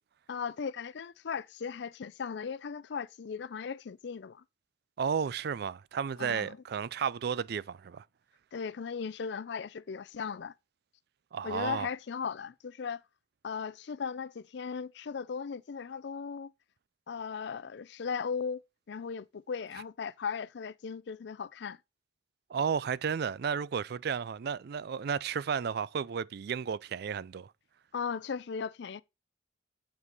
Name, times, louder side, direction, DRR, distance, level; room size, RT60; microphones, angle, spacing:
voice 1, 0.3-4.4 6.2-6.6 8.5-10.5 11.4-13.0 13.4-16.5 17.1-18.6 18.9-21.8 27.9-29.0, left 6 dB, 65° left, 0.4 m, -37 dB
voice 2, 5.0-8.0 11.3-11.9 22.5-27.5, right 6 dB, 60° right, 0.4 m, -33 dB
8.2 x 5.1 x 5.3 m
head